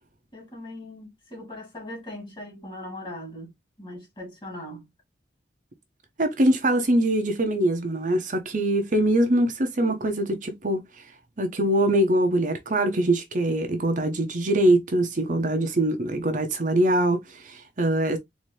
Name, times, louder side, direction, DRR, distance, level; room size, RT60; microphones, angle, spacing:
voice 1, 0.3-3.5 3.8-4.8, left 1 dB, 30° left, 2.4 m, -39 dB
voice 2, 6.2-10.8 11.4-18.2, right 1 dB, 45° right, 0.8 m, -23 dB
4.2 x 2.8 x 3.1 m
head